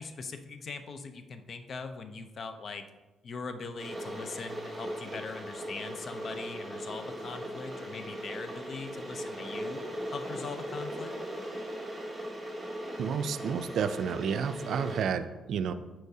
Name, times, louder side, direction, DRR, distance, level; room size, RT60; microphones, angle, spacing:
voice 1, 0.0-2.8 3.2-9.8 10.1-11.1, left 4 dB, 50° left, 8 dB, 0.6 m, -41 dB
Water / Boiling, 3.8-15.0, equal, 10° right, 1.7 m, -39 dB
voice 2, 13.0-15.7, right 7 dB, 70° right, 10 dB, 0.4 m, -31 dB
8.1 x 4.6 x 2.7 m, 1.1 s
cardioid pair, 90°, 0 cm